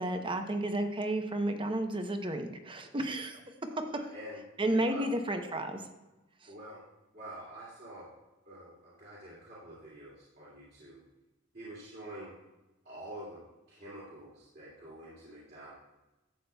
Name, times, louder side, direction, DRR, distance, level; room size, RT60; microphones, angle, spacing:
voice 1, 0.0-3.4 3.9-4.0 4.6-5.8 6.4-6.5, right 1 dB, 25° right, 6 dB, 0.7 m, -32 dB
voice 2, 3.8-5.0 6.5-6.8 7.1-8.1 8.5-11.0 11.5-12.3 12.8-13.4 13.7-15.7, right 1 dB, 50° right, -8 dB, 2.4 m, -47 dB
12.0 x 8.3 x 2.3 m, 1.1 s
head